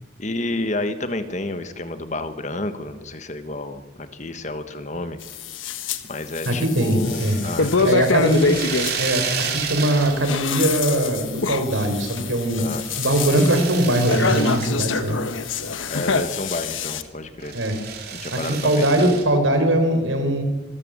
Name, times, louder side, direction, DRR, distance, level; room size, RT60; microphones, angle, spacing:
voice 1, 0.2-5.2 6.1-8.3 12.6-12.8 15.9-17.5 18.1-19.2, left 2 dB, 40° left, 10 dB, 1.4 m, -30 dB
sound 1, 5.2-6.0 6.3-8.9 10.0-17.0, left 4 dB, 85° left, 1.3 m, -25 dB
voice 2, 6.5-7.4 7.8-8.5 9.0-12.6 13.0-15.2 17.5-17.8 18.3-20.4, right 1 dB, 85° right, 6 dB, 4.1 m, -21 dB
sound 2, 7.0-10.5 10.8-11.4 11.8-14.7 15.0-15.1 15.5-17.0 17.4-19.2, right 6 dB, 50° right, 3.3 m, -32 dB
25.5 x 14.0 x 7.5 m, 1.3 s
head